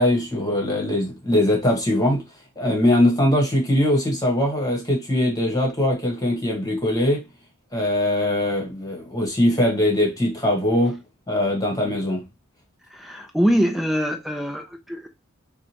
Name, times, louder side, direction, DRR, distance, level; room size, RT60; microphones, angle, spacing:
voice 1, 0.0-2.2 2.6-7.2 7.7-10.9 11.3-12.2, left 1 dB, 15° left, 1.3 m, -21 dB
voice 2, 12.9-15.1, equal, ahead, 0.4 m, -23 dB
4.8 x 2.2 x 2.8 m
head